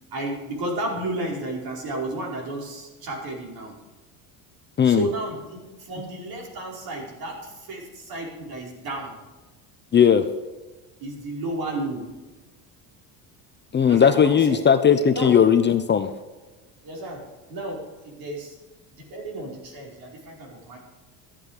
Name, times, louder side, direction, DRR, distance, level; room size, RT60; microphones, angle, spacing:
voice 1, 0.1-3.7 4.8-9.2 11.0-12.1 13.8-14.6 15.1-15.4 16.8-17.2 17.5-17.8 18.1-18.5 19.1-20.8, right 1 dB, 55° right, 0 dB, 5.0 m, -32 dB
voice 2, 9.9-10.2 13.7-16.1, left 7 dB, 25° left, 9 dB, 0.7 m, -17 dB
14.5 x 10.0 x 5.0 m, 1.2 s
cardioid pair, 120°, 42 cm